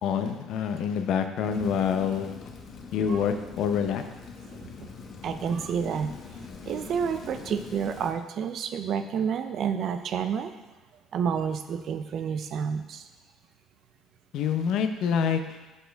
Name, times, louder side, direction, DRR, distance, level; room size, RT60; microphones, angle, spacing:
voice 1, 0.0-2.3 2.9-4.0 14.3-15.6, left 7 dB, 70° left, 7 dB, 0.6 m, -26 dB
Rain, 1.5-8.1, left 5 dB, 50° left, 1.0 m, -43 dB
voice 2, 4.5-4.9 5.2-6.1 6.6-10.5 11.1-13.1, right 7 dB, 55° right, 8 dB, 0.5 m, -29 dB
12.5 x 4.3 x 3.4 m, 1.2 s
cardioid pair, 105°, 0 cm